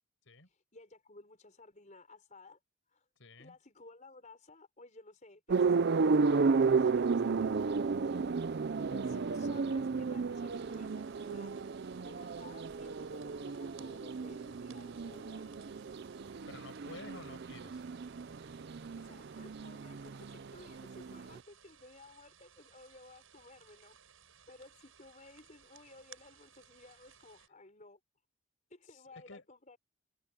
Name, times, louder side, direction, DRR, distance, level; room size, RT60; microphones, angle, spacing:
voice 1, 0.5-2.6 2.9-3.0 3.4-8.3 8.8-11.5 12.0-15.5 18.9-24.0 24.5-28.0 28.7-29.8, left 2 dB, 35° left, 4.7 m, -56 dB
voice 2, 3.2-3.6 16.5-17.8 28.9-29.4, left 2 dB, 65° left, 6.2 m, -51 dB
sound 1, 5.5-21.4, right 4 dB, 55° right, 0.5 m, -33 dB
sound 2, 10.5-27.5, right 8 dB, 75° right, 7.4 m, -61 dB
head